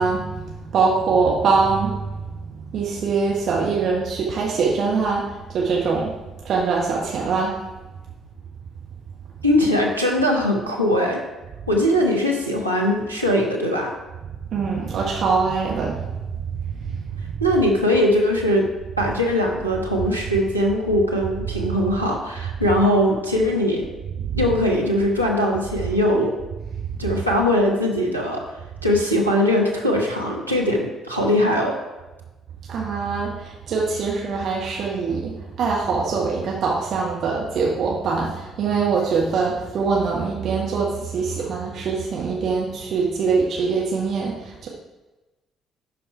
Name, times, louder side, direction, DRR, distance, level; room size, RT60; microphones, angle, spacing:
voice 1, 0.0-6.2 6.4-7.6 14.5-16.2 16.4-17.3 24.2-24.4 26.9-27.0 32.7-44.7, right 4 dB, 50° right, -3 dB, 1.2 m, -23 dB
voice 2, 9.4-11.2 11.7-13.9 17.4-18.7 19.0-23.8 24.4-26.3 27.0-28.4 28.8-31.8, left 1 dB, 90° right, -2 dB, 1.0 m, -20 dB
11.0 x 4.1 x 4.6 m, 1.1 s
figure-of-eight pair, 45°, 0 cm